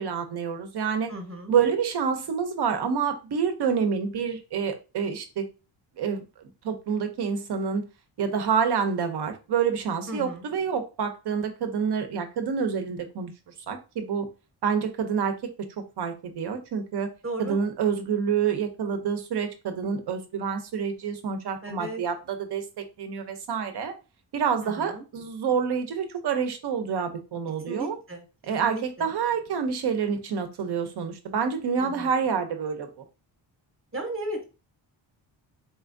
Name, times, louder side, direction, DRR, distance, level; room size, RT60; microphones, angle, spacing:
voice 1, 0.0-1.1 1.5-5.4 6.0-6.2 6.6-7.8 8.2-13.3 13.7-14.3 14.6-15.5 16.0-17.1 17.4-22.6 23.0-23.9 24.3-28.0 28.5-32.9, right 6 dB, 60° right, 7 dB, 0.7 m, -27 dB
voice 2, 1.1-1.5 10.1-10.5 17.2-17.6 21.6-22.0 24.6-25.0 27.7-28.2 28.6-29.1 31.8-32.1 33.9-34.5, right 1 dB, 30° right, 3 dB, 0.9 m, -35 dB
4.2 x 3.4 x 2.5 m, 0.31 s
wide cardioid pair, 165°, 45 cm